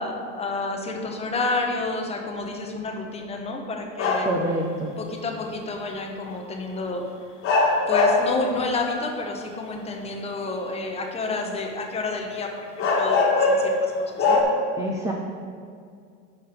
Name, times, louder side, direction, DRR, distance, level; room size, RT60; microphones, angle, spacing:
voice 1, 0.0-4.3 5.0-7.0 7.9-14.4, left 3 dB, 15° left, 2 dB, 0.8 m, -30 dB
sound 1, 4.0-4.5 6.3-6.4 7.4-8.4 9.0-9.6 12.1-12.2 12.8-13.8 14.2-14.4, left 3 dB, 35° left, 1.4 m, -21 dB
voice 2, 4.3-4.9 14.8-15.1, right 1 dB, 10° right, -1 dB, 0.3 m, -26 dB
5.8 x 5.4 x 6.7 m, 2.2 s
cardioid pair, 150°, 36 cm